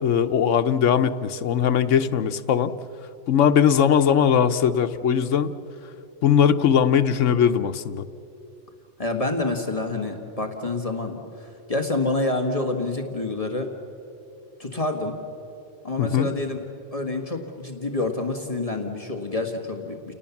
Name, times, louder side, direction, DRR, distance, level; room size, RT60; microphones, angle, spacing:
voice 1, 0.0-2.7 3.3-5.5 6.2-8.0 16.0-16.3, left 8 dB, 85° left, 10 dB, 1.2 m, -20 dB
voice 2, 9.0-13.7 14.6-15.2 15.8-16.6 16.9-20.1, left 2 dB, 30° left, 3 dB, 1.7 m, -27 dB
29.5 x 18.5 x 7.2 m, 2.8 s
omnidirectional pair, 1.2 m